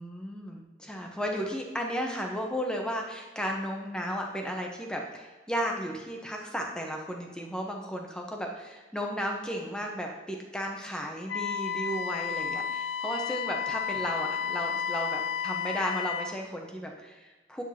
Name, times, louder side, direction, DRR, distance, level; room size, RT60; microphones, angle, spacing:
voice 1, 0.0-17.6, equal, 5° left, 1 dB, 0.9 m, -34 dB
Wind instrument woodwind instrument, 11.3-16.3, left 7 dB, 65° left, 0.4 m, -32 dB
9.3 x 6.2 x 2.8 m, 1.2 s
head